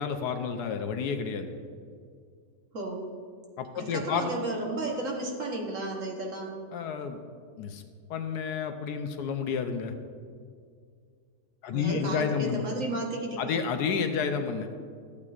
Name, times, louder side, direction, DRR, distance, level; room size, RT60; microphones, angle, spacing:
voice 1, 0.0-1.5 3.6-4.3 6.7-7.2 7.6-7.8 8.1-9.9 11.6-12.6 13.4-14.7, left 6 dB, 75° left, 7 dB, 1.1 m, -30 dB
voice 2, 2.7-3.0 3.7-6.5 11.7-13.6, right 2 dB, 50° right, 0 dB, 1.4 m, -33 dB
13.0 x 8.4 x 2.4 m, 2.2 s
omnidirectional pair, 1.8 m